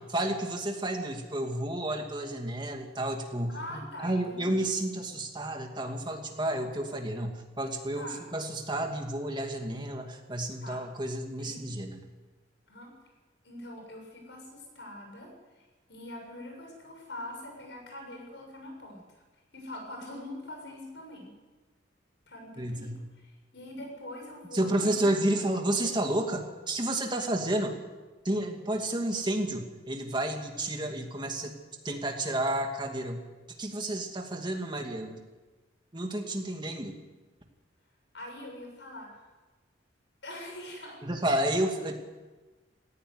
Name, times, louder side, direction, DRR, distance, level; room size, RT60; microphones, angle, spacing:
voice 1, 0.1-12.0 22.6-22.9 24.5-27.7 28.2-31.5 31.8-33.2 33.6-35.2 35.9-36.9 41.0-42.0, right 1 dB, 25° right, 3 dB, 2.4 m, -31 dB
voice 2, 3.5-4.6 8.0-8.2 10.6-10.8 11.4-11.8 12.7-12.9 13.4-19.2 19.5-21.3 22.3-25.4 38.1-39.2 40.2-41.0, left 1 dB, 65° left, 1 dB, 7.2 m, -44 dB
18.0 x 16.0 x 9.7 m, 1.2 s
head